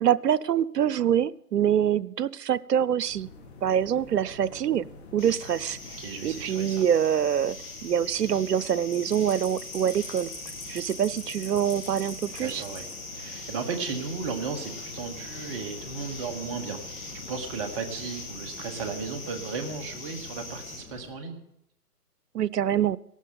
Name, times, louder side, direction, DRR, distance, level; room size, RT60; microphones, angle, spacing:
voice 1, 0.0-3.3 3.6-4.9 5.1-5.8 6.2-7.6 7.8-10.3 10.7-12.6 22.3-23.0, right 9 dB, 90° right, 20 dB, 0.7 m, -25 dB
sound 1, 3.0-21.1, left 3 dB, 40° left, 2.6 m, -47 dB
sound 2, 5.2-20.8, left 3 dB, 20° left, 6.4 m, -41 dB
voice 2, 6.0-6.8 12.4-12.9 13.1-16.8 17.1-21.4, right 5 dB, 20° right, 5 dB, 1.3 m, -35 dB
17.5 x 12.5 x 3.9 m, 0.77 s
hypercardioid pair, 150°, 47 cm